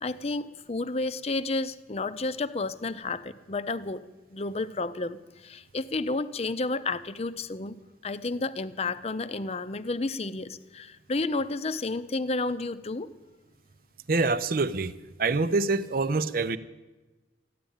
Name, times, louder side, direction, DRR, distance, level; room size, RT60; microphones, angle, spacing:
voice 1, 0.0-4.0 4.3-7.8 8.0-13.1, left 3 dB, 35° left, 13 dB, 0.6 m, -31 dB
voice 2, 14.1-16.6, right 3 dB, 55° right, 14 dB, 0.6 m, -26 dB
14.5 x 10.5 x 8.8 m, 1.2 s
head